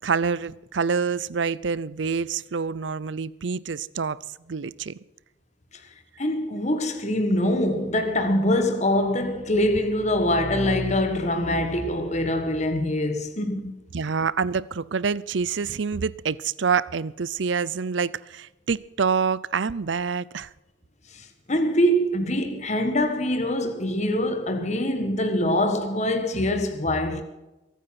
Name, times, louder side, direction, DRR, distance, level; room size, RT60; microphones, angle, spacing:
voice 1, 0.0-4.2 4.5-4.9 13.9-20.5, right 5 dB, 75° right, 0.6 m, -26 dB
voice 2, 6.2-13.8 21.1-27.2, left 1 dB, 35° left, 1.6 m, -24 dB
22.5 x 9.4 x 6.0 m
head